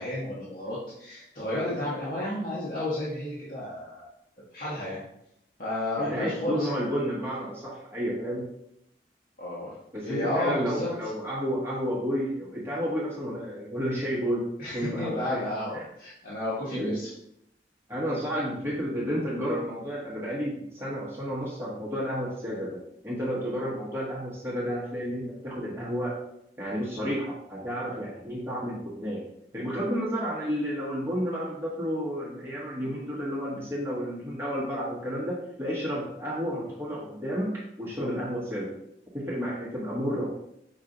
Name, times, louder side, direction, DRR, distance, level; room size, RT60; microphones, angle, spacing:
voice 1, 0.0-4.0 4.5-5.0 5.6-6.8 9.4-9.7 10.0-10.9 14.6-17.1, left 1 dB, 50° left, -8 dB, 1.1 m, -32 dB
voice 2, 6.0-8.5 9.9-15.4 15.7-15.8 16.7-17.0 17.9-26.1 26.6-29.3 29.5-38.7 39.1-40.3, equal, 15° right, -6 dB, 1.0 m, -31 dB
5.7 x 2.4 x 3.7 m, 0.77 s
head